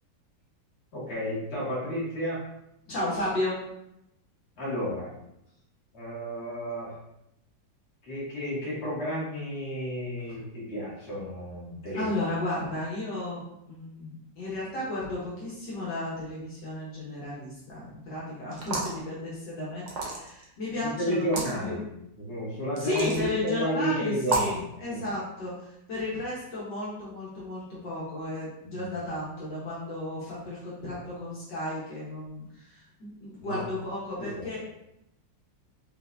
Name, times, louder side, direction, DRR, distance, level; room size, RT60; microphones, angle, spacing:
voice 1, 0.9-2.4 4.6-5.1 5.9-6.9 8.0-12.1 20.8-21.8 22.1-25.1 28.6-28.9 33.4-33.6 34.2-34.5, equal, 35° left, -8 dB, 1.7 m, -32 dB
voice 2, 2.9-3.6 11.9-13.4 13.7-21.8 22.8-34.6, left 2 dB, 65° left, -7 dB, 1.6 m, -34 dB
sound 1, 18.5-19.0 19.9-20.4 21.2-21.5 22.8-23.2 24.2-24.6, right 4 dB, 65° right, 1.2 m, -30 dB
5.5 x 2.6 x 2.5 m, 0.82 s
omnidirectional pair, 2.1 m